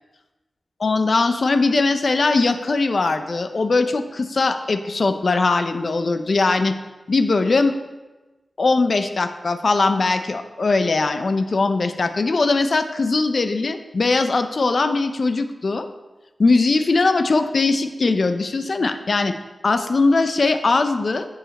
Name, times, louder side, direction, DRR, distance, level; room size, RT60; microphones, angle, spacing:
voice 1, 0.8-6.7 7.1-7.8 8.6-15.9 16.4-19.3 19.6-21.3, left 3 dB, 60° left, 9 dB, 0.6 m, -20 dB
8.9 x 7.4 x 4.1 m, 1.1 s
cardioid pair, 60°, 0 cm